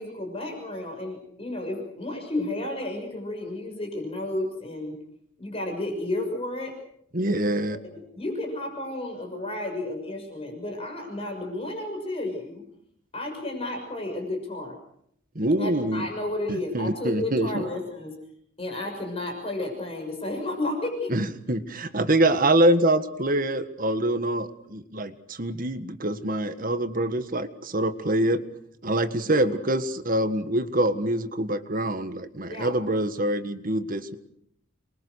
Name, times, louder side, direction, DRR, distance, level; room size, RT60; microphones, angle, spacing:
voice 1, 0.0-5.0 5.4-6.7 7.2-12.6 13.1-14.7 15.6-18.1 18.6-21.1 29.2-29.6 32.5-32.8, left 1 dB, 30° left, 2 dB, 6.4 m, -32 dB
voice 2, 7.1-7.8 15.3-16.1 16.5-17.6 21.1-28.4 28.8-34.2, right 1 dB, 45° right, 10 dB, 1.7 m, -25 dB
28.0 x 22.5 x 6.5 m, 0.70 s
head